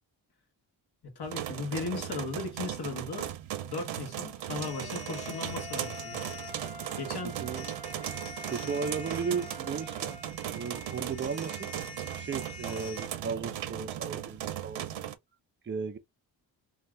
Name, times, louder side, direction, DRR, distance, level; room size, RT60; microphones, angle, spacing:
voice 1, 1.0-3.3 3.6-6.2 7.0-7.4, left 4 dB, 55° left, 1.3 m, -37 dB
sound 1, 1.2-15.1, right 11 dB, 75° right, 0.6 m, -37 dB
sound 2, 4.5-10.3, left 1 dB, 85° left, 1.3 m, -47 dB
sound 3, 4.6-6.5 7.6-13.1, left 2 dB, 30° left, 1.5 m, -46 dB
voice 2, 7.2-7.7 8.5-10.2 10.5-11.7 12.1-15.1 15.6-16.0, right 5 dB, 25° right, 0.5 m, -35 dB
2.7 x 2.4 x 3.1 m
cardioid pair, 100°, 47 cm